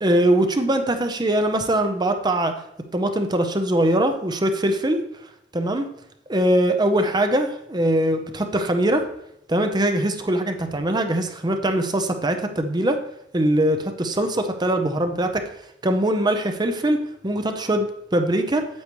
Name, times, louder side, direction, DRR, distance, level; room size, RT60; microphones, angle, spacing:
voice 1, 0.0-2.6 2.9-5.0 5.5-5.9 6.3-9.1 9.5-13.0 13.3-15.5 15.8-18.7, right 1 dB, 25° right, 7 dB, 0.7 m, -22 dB
8.5 x 8.0 x 3.1 m, 0.77 s
head